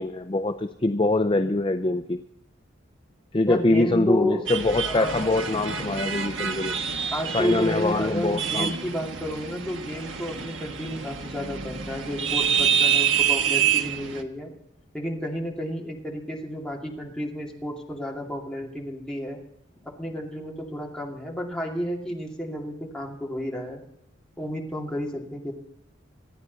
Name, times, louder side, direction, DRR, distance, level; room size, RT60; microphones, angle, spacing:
voice 1, 0.0-2.2 3.3-6.8 7.3-8.7, left 2 dB, 25° left, 8 dB, 0.5 m, -24 dB
voice 2, 3.4-4.5 4.8-5.6 7.1-14.5 14.9-19.4 20.0-23.8 24.4-25.5, equal, 5° left, -2 dB, 2.5 m, -31 dB
sound 1, 4.5-14.2, right 8 dB, 65° right, 1.4 m, -27 dB
26.5 x 9.7 x 4.0 m, 0.79 s
head